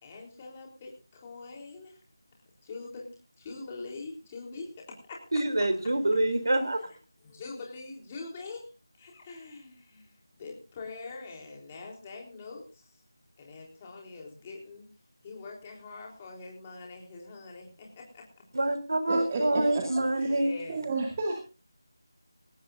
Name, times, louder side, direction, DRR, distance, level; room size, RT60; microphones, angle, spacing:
voice 1, 0.0-2.0 2.6-5.2 5.6-5.7 7.2-8.7 9.0-12.9 13.4-14.9 15.2-18.3 20.1-20.8, left 3 dB, 20° left, 3.7 m, -44 dB
voice 2, 5.3-6.9 18.5-20.6, right 1 dB, 65° right, 3.5 m, -26 dB
voice 3, 19.1-19.9 20.7-21.4, right 3 dB, 20° right, 2.3 m, -31 dB
18.5 x 18.0 x 2.6 m
figure-of-eight pair, 170°, 2 cm